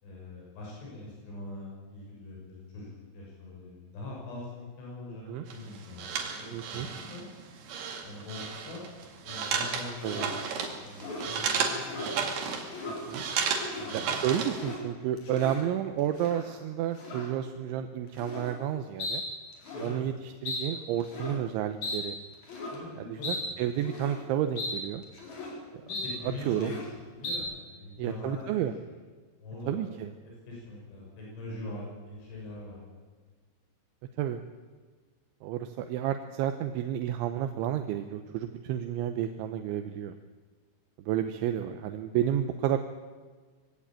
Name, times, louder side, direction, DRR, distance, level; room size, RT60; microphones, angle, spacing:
voice 1, 0.0-6.5 6.7-7.2 8.0-8.9 9.2-10.5 10.8-12.1 13.7-14.2 19.7-20.1 22.7-23.6 25.8-26.9 27.2-29.0 29.4-29.8 30.2-32.8, left 2 dB, 80° left, -4 dB, 9.0 m, -43 dB
sound 1, 5.5-14.8, right 6 dB, 65° right, 4.3 m, -33 dB
voice 2, 6.5-6.9 10.0-10.3 13.1-13.2 13.9-19.2 19.8-22.2 23.0-25.0 25.7-25.8 26.5-26.7 28.0-28.7 29.7-30.1 34.2-34.4 35.4-40.1 41.1-42.8, right 11 dB, 80° right, 7 dB, 3.2 m, -31 dB
sound 2, 10.0-10.4 10.9-11.3 11.8-12.2 12.6-13.0 13.5-14.0 14.3-14.8 15.2-15.7 16.1-16.5 17.0-17.3 18.1-18.5 19.0-19.2 19.5-19.9 20.5-20.6 21.0-21.4 21.8-22.0 22.4-22.8 23.2-23.4 23.8-24.2 24.6-24.7 25.0-25.5 25.9-26.1 26.4-26.9 27.2-27.4, left 2 dB, 40° left, 5.2 m, -37 dB
22.5 x 17.0 x 8.9 m, 1.4 s
omnidirectional pair, 5.5 m